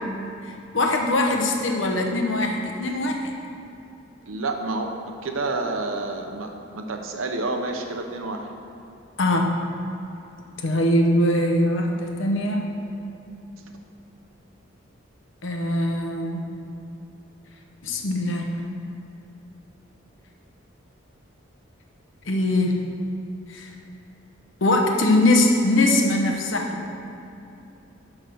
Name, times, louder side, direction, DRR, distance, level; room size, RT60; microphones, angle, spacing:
voice 1, 0.4-3.2 9.2-9.5 10.6-12.6 15.4-16.5 17.8-18.5 22.2-22.8 23.5-23.7 24.6-26.8, left 1 dB, 75° left, 2 dB, 1.0 m, -22 dB
voice 2, 4.3-4.9 5.2-8.5, right 2 dB, 90° right, 4 dB, 0.9 m, -29 dB
11.0 x 3.8 x 6.2 m, 2.8 s
head